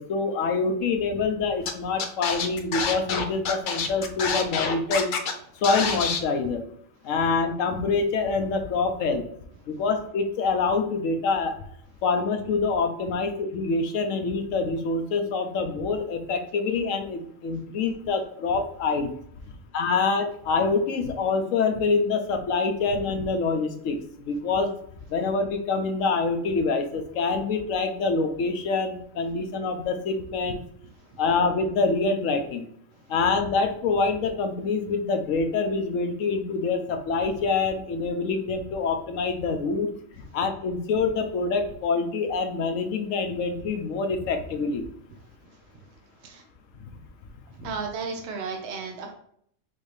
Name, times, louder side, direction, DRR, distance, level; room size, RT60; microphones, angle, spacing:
voice 1, 0.0-5.1 5.6-6.6 7.0-9.2 9.7-11.6 12.0-19.1 19.7-24.7 25.1-30.6 31.2-32.7 33.1-39.9 40.3-44.9 47.6-47.7, left 4 dB, 90° left, 6 dB, 1.1 m, -26 dB
Scratching (performance technique), 1.7-1.8 2.0-5.3 5.6-6.2, left 5 dB, 55° left, 0.6 m, -27 dB
voice 2, 47.6-49.1, right 5 dB, 65° right, 2 dB, 0.9 m, -33 dB
5.7 x 2.7 x 3.3 m, 0.66 s
omnidirectional pair, 1.3 m